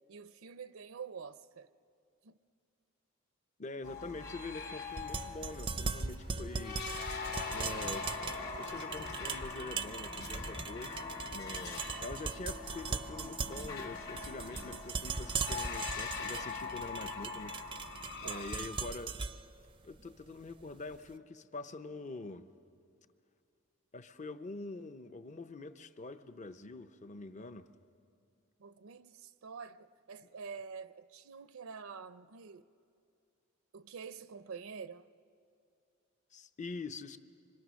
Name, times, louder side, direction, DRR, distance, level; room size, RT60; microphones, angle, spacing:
voice 1, 0.1-1.7 2.2-2.4 18.2-18.5 28.6-32.7 33.7-35.1, right 5 dB, 75° right, 0.5 m, -47 dB
voice 2, 3.6-6.8 7.5-8.1 8.4-17.6 18.2-19.2 19.8-22.5 23.9-27.7 36.3-37.2, left 3 dB, 35° left, 0.7 m, -45 dB
sound 1, 3.8-18.6, left 4 dB, 50° left, 2.5 m, -42 dB
sound 2, 4.9-21.0, right 5 dB, 25° right, 0.5 m, -40 dB
26.0 x 25.0 x 6.3 m
head